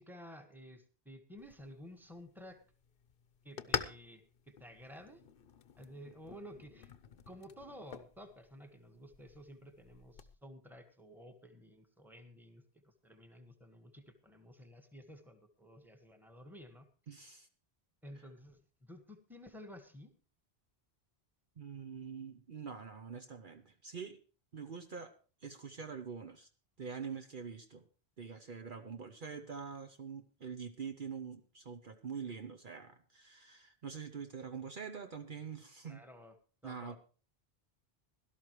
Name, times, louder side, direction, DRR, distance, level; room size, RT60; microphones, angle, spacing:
voice 1, 0.0-2.6 3.4-5.2 5.8-6.9 7.3-16.9 18.0-20.1 35.8-36.3 36.6-37.0, equal, ahead, 6 dB, 1.4 m, -53 dB
sound 1, 1.4-10.3, left 7 dB, 60° left, 0.9 m, -46 dB
voice 2, 17.1-17.5 21.6-24.2 24.5-25.1 25.4-26.5 26.8-27.8 28.2-36.0 36.6-37.0, right 6 dB, 55° right, 7 dB, 0.9 m, -45 dB
17.0 x 12.5 x 3.1 m, 0.37 s
omnidirectional pair, 1.1 m